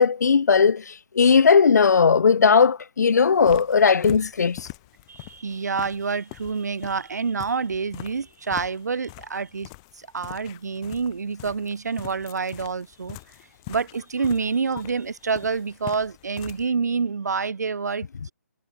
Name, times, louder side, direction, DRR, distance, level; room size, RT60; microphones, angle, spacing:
voice 1, 0.0-4.7, left 5 dB, 80° left, 0.4 m, -18 dB
sound 1, 3.3-16.7, left 26 dB, 20° left, 1.1 m, -43 dB
voice 2, 5.1-9.7 9.9-13.2 13.7-18.3, right 5 dB, 80° right, 0.8 m, -27 dB
hypercardioid pair, 165°, 9 cm